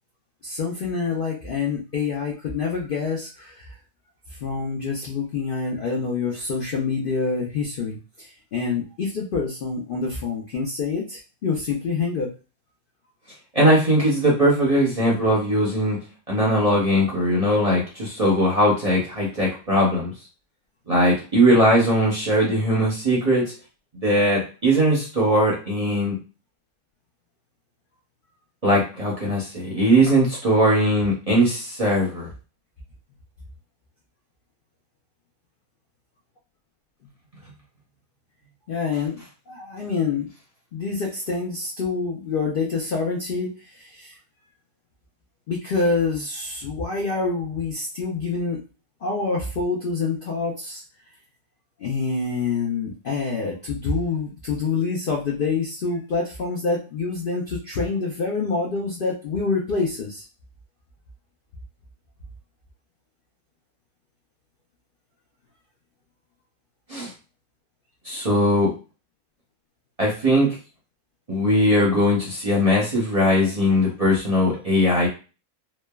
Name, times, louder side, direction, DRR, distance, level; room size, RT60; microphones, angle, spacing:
voice 1, 0.4-3.7 4.3-12.3 38.7-40.3 40.7-44.2 45.5-48.6 49.0-50.8 51.8-60.2, left 4 dB, 65° left, -1 dB, 0.5 m, -26 dB
voice 2, 13.5-16.0 16.3-20.1 20.9-23.5 24.0-26.2 28.6-32.3 66.9-67.1 68.0-68.7 70.0-70.5 71.3-75.1, equal, 35° right, -4 dB, 0.6 m, -20 dB
3.2 x 2.0 x 2.2 m, 0.33 s
omnidirectional pair, 1.5 m